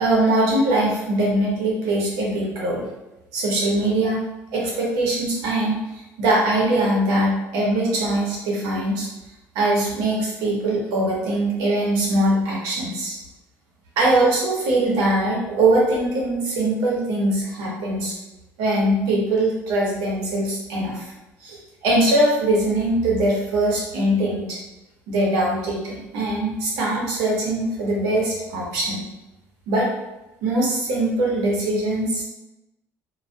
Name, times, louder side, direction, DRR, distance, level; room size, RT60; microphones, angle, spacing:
voice 1, 0.0-2.9 3.3-4.2 4.5-5.8 6.2-9.1 9.5-13.2 14.0-18.1 18.6-21.1 21.4-21.6 21.8-24.6 25.1-29.0 29.7-29.9 30.4-32.2, right 1 dB, 90° right, -3 dB, 0.8 m, -22 dB
2.5 x 2.2 x 2.3 m, 0.99 s
cardioid pair, 175°, 5 cm